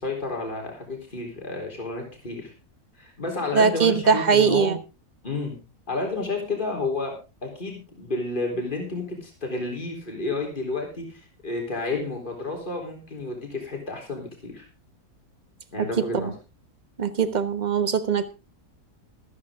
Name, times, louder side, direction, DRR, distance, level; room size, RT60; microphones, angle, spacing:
voice 1, 0.0-2.5 3.0-4.8 5.2-5.5 5.9-7.2 7.4-14.7 15.7-16.3, left 3 dB, 30° left, 1 dB, 4.1 m, -31 dB
voice 2, 3.5-4.8 15.8-16.3 17.0-18.3, right 6 dB, 30° right, 11 dB, 1.2 m, -21 dB
14.5 x 13.5 x 3.7 m, 0.30 s
omnidirectional pair, 1.7 m